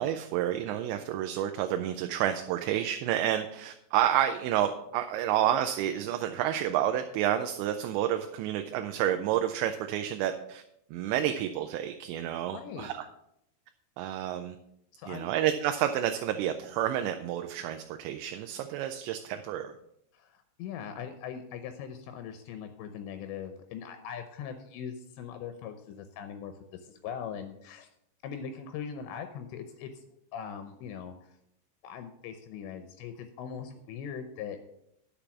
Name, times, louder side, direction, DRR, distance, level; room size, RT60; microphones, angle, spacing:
voice 1, 0.0-10.6 10.9-13.1 14.0-14.6 15.1-19.7, right 11 dB, 85° right, 7 dB, 2.8 m, -29 dB
voice 2, 12.3-12.9 14.9-15.3 20.1-27.9 28.2-29.9 30.3-31.3 31.8-34.6, left 7 dB, 80° left, 8 dB, 2.9 m, -41 dB
10.0 x 6.8 x 6.0 m, 0.78 s
omnidirectional pair, 5.2 m